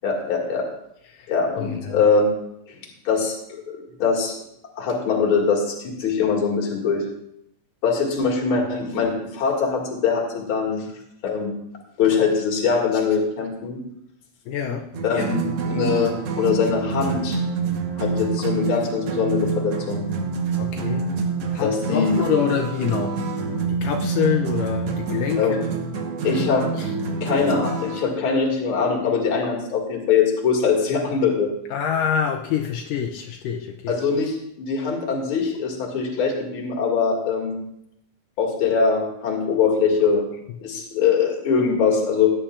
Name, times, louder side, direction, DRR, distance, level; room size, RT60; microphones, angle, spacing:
voice 1, 0.0-0.7 1.3-2.3 2.7-2.8 3.0-4.4 4.8-7.0 7.8-10.9 11.2-11.5 12.0-13.8 15.0-17.4 18.0-20.0 21.6-22.1 25.3-25.6 26.2-26.7 27.2-31.5 33.9-37.6 38.4-40.3 40.6-42.3, left 5 dB, 45° left, 0 dB, 2.4 m, -22 dB
voice 2, 1.6-2.0 14.5-14.9 20.6-21.1 21.5-23.2 23.7-25.5 31.7-33.9, left 8 dB, 80° left, 3 dB, 2.2 m, -25 dB
sound 1, 14.9-28.1, right 5 dB, 60° right, 1.6 m, -27 dB
17.0 x 10.0 x 2.4 m, 0.78 s
omnidirectional pair, 3.9 m